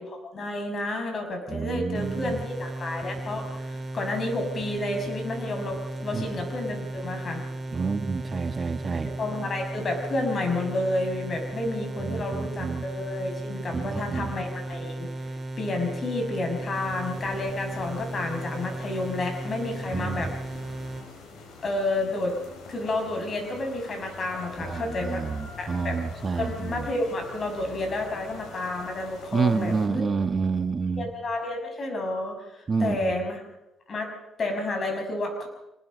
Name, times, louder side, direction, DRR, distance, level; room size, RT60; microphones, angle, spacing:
voice 1, 0.0-7.4 9.0-15.1 15.6-20.3 21.6-22.3 22.7-25.2 25.6-26.0 26.4-30.0 31.0-33.4 33.9-34.1 34.4-35.5, left 2 dB, 45° left, 4 dB, 6.1 m, -30 dB
voice 2, 1.5-2.4 6.1-6.3 7.7-9.1 12.0-12.9 13.7-14.3 19.9-20.3 24.6-26.9 29.3-31.1 32.7-33.2, right 5 dB, 35° right, 9 dB, 1.4 m, -28 dB
sound 1, 1.9-21.1, right 1 dB, 20° right, 5.1 m, -35 dB
sound 2, 16.7-29.9, left 3 dB, 80° left, 6.0 m, -45 dB
25.0 x 20.0 x 5.2 m, 0.92 s
cardioid pair, 90°, 0 cm